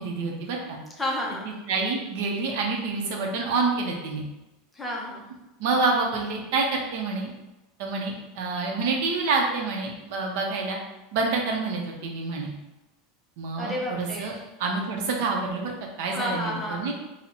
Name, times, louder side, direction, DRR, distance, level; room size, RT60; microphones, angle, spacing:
voice 1, 0.0-0.8 1.7-4.3 5.6-7.3 7.8-10.8 11.1-12.5 13.4-14.3 14.6-16.9, right 3 dB, 60° right, 0 dB, 0.6 m, -27 dB
voice 2, 1.0-1.4 4.7-5.3 13.6-14.4 16.1-16.9, left 1 dB, 10° left, -2 dB, 0.5 m, -31 dB
3.8 x 2.0 x 2.9 m, 1.0 s
supercardioid pair, 160°, 0 cm